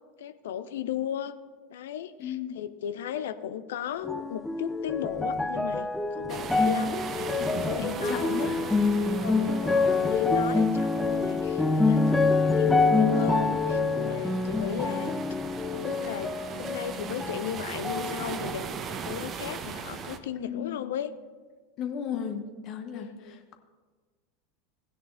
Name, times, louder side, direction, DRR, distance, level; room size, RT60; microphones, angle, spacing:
voice 1, 0.2-1.3 1.7-8.3 9.2-15.2 15.7-21.1 22.9-23.4, left 9 dB, 65° left, 13 dB, 0.5 m, -36 dB
voice 2, 2.2-2.6 7.4-8.6 9.0-9.1 20.4-20.9 21.8-23.6, left 8 dB, 45° left, 7 dB, 1.0 m, -35 dB
sound 1, 4.0-17.5 17.8-18.8 19.5-19.6, left 3 dB, 10° left, 0.5 m, -26 dB
sound 2, 6.3-20.2, right 6 dB, 30° right, 0.7 m, -39 dB
16.0 x 9.9 x 2.5 m, 1.4 s
figure-of-eight pair, 80°, 0 cm